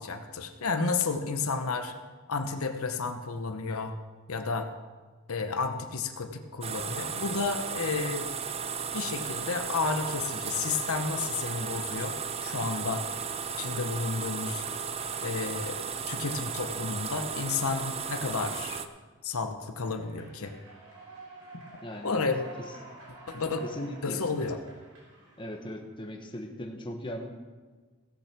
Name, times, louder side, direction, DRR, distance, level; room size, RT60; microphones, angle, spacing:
voice 1, 0.0-1.9 2.3-4.0 4.3-4.7 5.3-8.3 8.9-12.2 12.4-13.0 13.6-14.6 15.2-18.8 19.2-20.5 22.0-22.4 23.3-23.6 24.0-24.6, left 4 dB, 70° left, 6 dB, 0.9 m, -31 dB
sound 1, 6.6-18.9, right 6 dB, 25° right, 0.5 m, -35 dB
Human voice / Clapping / Cheering, 19.8-25.8, right 2 dB, 80° right, 3.6 m, -49 dB
voice 2, 21.8-22.2 22.6-22.7 23.6-24.2 25.4-27.3, equal, 20° left, 3 dB, 1.1 m, -38 dB
16.0 x 6.8 x 5.9 m, 1.4 s
head